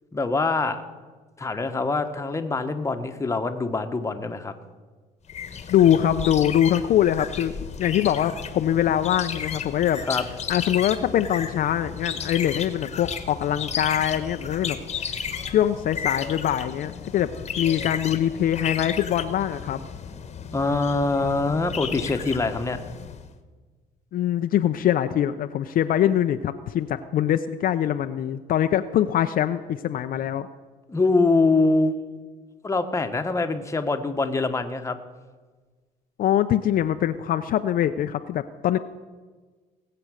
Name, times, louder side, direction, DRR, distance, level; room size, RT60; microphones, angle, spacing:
voice 1, 0.1-0.8 1.4-4.5 10.1-10.2 20.5-22.8 30.9-32.0 32.6-35.0, left 3 dB, 15° left, 6 dB, 1.2 m, -24 dB
sound 1, 5.3-23.3, left 7 dB, 40° left, 1.2 m, -34 dB
voice 2, 5.7-10.0 10.5-14.8 15.4-17.3 17.6-19.8 24.1-30.5 36.2-38.8, left 11 dB, 55° left, 9 dB, 0.6 m, -23 dB
18.5 x 7.9 x 6.3 m, 1.4 s
cardioid pair, 110°, 17 cm